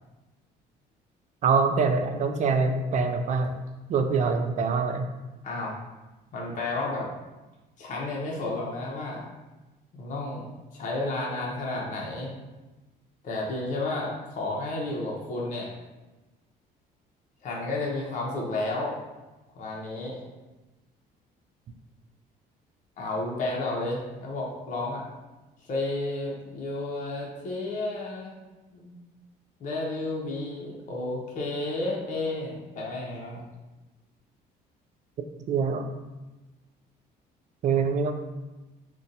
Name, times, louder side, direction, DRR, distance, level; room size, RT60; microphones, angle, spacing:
voice 1, 1.4-3.5 3.9-5.1 35.5-35.8 37.6-38.1, right 5 dB, 45° right, 7 dB, 0.4 m, -24 dB
voice 2, 5.4-5.8 6.3-7.1 7.8-9.2 9.9-10.4 10.7-12.3 13.2-15.7 17.4-18.9 19.5-20.3 23.0-25.0 25.6-28.4 28.7-28.9 29.6-33.4, left 2 dB, 50° left, -3 dB, 0.7 m, -32 dB
2.7 x 2.2 x 3.8 m, 1.1 s
cardioid pair, 110°, 17 cm